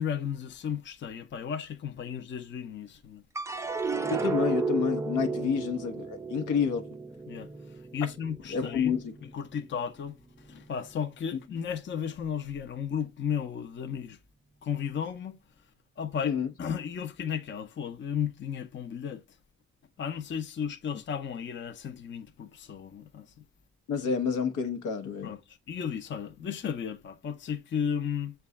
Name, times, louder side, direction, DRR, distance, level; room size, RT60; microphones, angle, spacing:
voice 1, 0.0-3.2 5.4-5.6 7.3-8.9 9.2-14.2 14.6-15.4 16.0-19.2 20.0-23.4 25.2-28.3, left 7 dB, 40° left, 0.6 m, -34 dB
sound 1, 3.4-9.8 10.2-10.9, right 4 dB, 10° right, 0.4 m, -34 dB
voice 2, 4.1-6.9 8.5-9.1 16.2-16.5 23.9-25.3, left 6 dB, 85° left, 0.9 m, -29 dB
6.6 x 2.3 x 3.4 m
cardioid pair, 90°, 30 cm